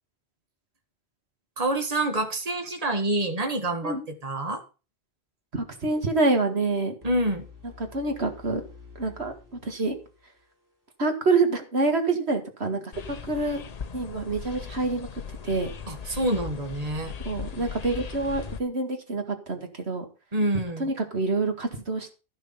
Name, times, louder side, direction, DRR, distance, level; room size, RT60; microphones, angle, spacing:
voice 1, 1.6-4.6 7.0-7.5 15.9-17.1 20.3-20.9, right 1 dB, 35° right, 5 dB, 1.8 m, -27 dB
voice 2, 5.5-6.9 7.9-8.7 9.0-9.3 9.6-10.0 11.0-12.9 13.3-13.6 13.9-15.1 15.4-15.7 17.3-20.1 20.8-22.1, right 3 dB, 85° right, 5 dB, 2.3 m, -26 dB
sound 1, 7.0-10.9, left 5 dB, 15° right, 4.4 m, -49 dB
sound 2, 12.9-18.6, left 6 dB, 40° left, 0.8 m, -38 dB
14.0 x 6.4 x 5.7 m, 0.33 s
omnidirectional pair, 1.1 m